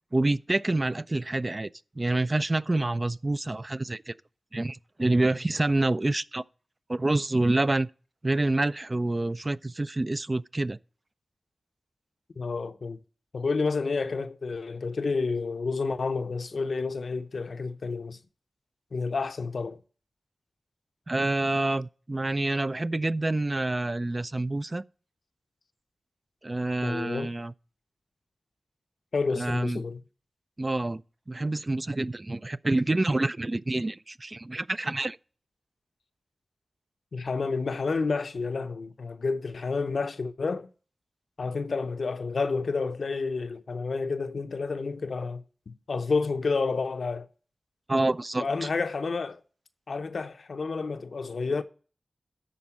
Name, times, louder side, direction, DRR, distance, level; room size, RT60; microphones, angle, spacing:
voice 1, 0.1-1.7 2.0-4.1 4.5-6.4 6.9-7.9 8.2-10.8 21.1-24.8 26.4-27.5 29.4-29.8 30.6-31.0 31.3-35.2 47.9-48.7, right 2 dB, 35° right, 0.3 m, -27 dB
voice 2, 12.4-13.0 13.3-18.2 18.9-19.8 26.8-27.3 29.1-30.0 37.1-40.7 41.4-47.3 48.4-49.4 49.9-51.6, left 4 dB, 75° left, 0.6 m, -30 dB
11.5 x 4.3 x 6.0 m
cardioid pair, 45°, 0 cm